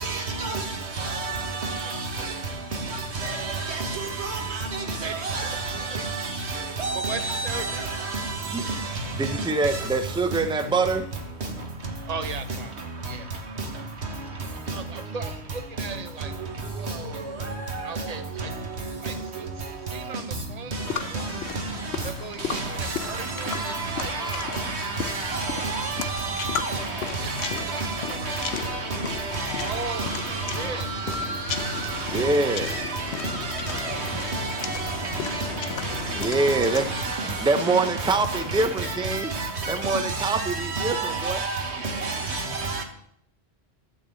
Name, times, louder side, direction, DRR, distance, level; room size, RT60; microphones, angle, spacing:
voice 1, 0.0-0.6 1.0-1.8 3.2-3.4 3.7-3.9 4.2-4.4 5.0-5.6 6.8-7.8 22.5-22.6 23.5-26.8 27.6-28.0 28.3-28.5 29.1-29.7 30.0-30.6 31.5-31.7 32.1-32.2 32.7-32.8 33.7-33.9 34.3-34.5 36.5-36.6 36.9-37.1 38.0-38.1 38.8-41.6 42.0-42.8, right 3 dB, 80° right, 1.7 m, -29 dB
voice 2, 5.7-6.1 6.9-7.8 12.1-12.7 13.0-13.3 14.7-16.3 16.7-17.5 17.8-18.5 19.0-19.5 19.9-21.4 22.0-24.5 25.6-25.8 27.2-27.8 28.1-28.8 29.6-30.9 33.8-38.2, right 5 dB, 40° right, 0.8 m, -38 dB
voice 3, 9.2-11.1 32.1-32.7 36.2-36.9 37.2-39.3 39.7-41.4, right 3 dB, 5° right, 0.4 m, -25 dB
sound 1, 20.8-36.9, left 7 dB, 70° left, 0.9 m, -35 dB
12.0 x 4.3 x 7.6 m
omnidirectional pair, 1.1 m